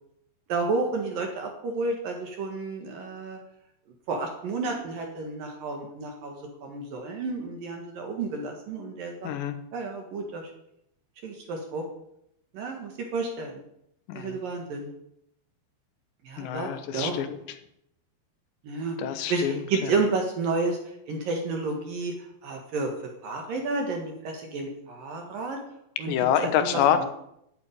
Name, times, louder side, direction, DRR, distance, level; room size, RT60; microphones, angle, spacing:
voice 1, 0.5-3.4 4.1-9.3 9.7-10.5 11.2-11.8 12.5-13.6 14.1-14.9 16.2-17.2 18.6-19.0 19.3-20.8 21.1-22.9 23.2-25.6 26.0-26.1 26.4-27.0, right 3 dB, 60° right, 2 dB, 2.7 m, -31 dB
voice 2, 9.2-9.6 14.1-14.4 16.4-17.4 19.0-19.9 26.1-27.0, left 9 dB, 75° left, 9 dB, 3.0 m, -26 dB
11.5 x 8.3 x 9.5 m, 0.78 s
omnidirectional pair, 5.7 m